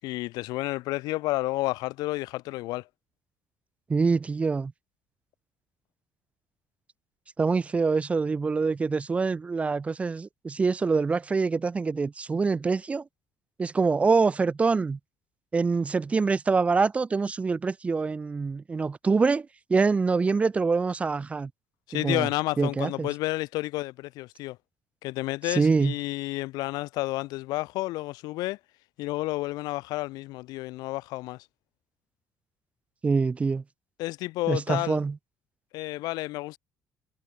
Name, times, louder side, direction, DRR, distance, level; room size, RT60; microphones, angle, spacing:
voice 1, 0.0-2.9 21.9-24.6 25.0-28.6 29.0-31.4 34.0-35.0 35.7-36.6, left 19 dB, 90° left, 5.9 m, -31 dB
voice 2, 3.9-4.7 7.4-13.0 13.6-15.0 15.5-21.5 21.9-22.3 22.6-23.1 25.5-25.9 33.0-33.6 34.5-35.2, right 4 dB, 20° right, 2.1 m, -25 dB
cardioid pair, 155°, 7 cm